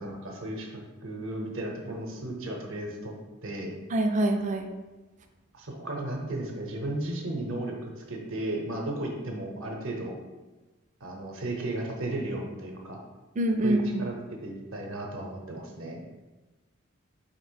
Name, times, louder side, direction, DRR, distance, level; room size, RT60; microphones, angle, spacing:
voice 1, 0.0-3.1 3.4-3.7 5.5-7.8 8.1-10.1 11.0-13.0 13.6-14.1 14.4-16.0, right 1 dB, 70° right, 1 dB, 0.7 m, -34 dB
voice 2, 3.9-4.7 13.4-14.1, right 1 dB, 35° right, 5 dB, 0.4 m, -25 dB
3.3 x 2.9 x 4.5 m, 1.2 s
head